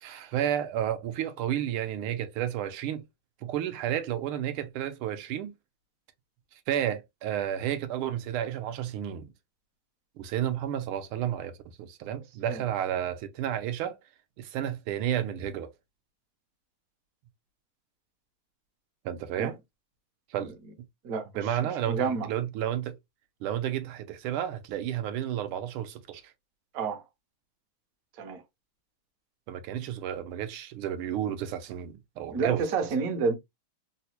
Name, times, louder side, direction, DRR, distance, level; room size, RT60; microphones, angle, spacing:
voice 1, 0.0-3.0 3.4-5.5 6.7-9.3 10.2-14.0 14.4-15.7 19.0-19.5 20.3-20.5 21.4-23.0 23.4-26.3 29.5-32.6, right 10 dB, 80° right, 1.5 m, -31 dB
voice 2, 21.0-21.6 21.9-22.3 26.7-27.0 28.2-28.4 32.3-33.4, right 5 dB, 60° right, 0.9 m, -29 dB
4.0 x 2.1 x 2.8 m
omnidirectional pair, 2.4 m